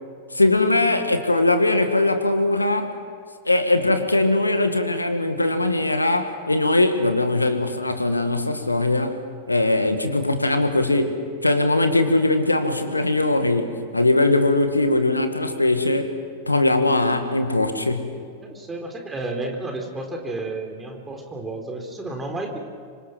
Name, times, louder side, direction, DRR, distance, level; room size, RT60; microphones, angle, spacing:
voice 1, 0.3-3.0 3.5-16.1 16.5-18.2, left 2 dB, 85° left, 8 dB, 2.0 m, -21 dB
voice 2, 18.4-22.6, right 2 dB, 15° right, 2 dB, 4.0 m, -31 dB
26.0 x 25.5 x 6.1 m, 2.1 s
figure-of-eight pair, 90°, 0 cm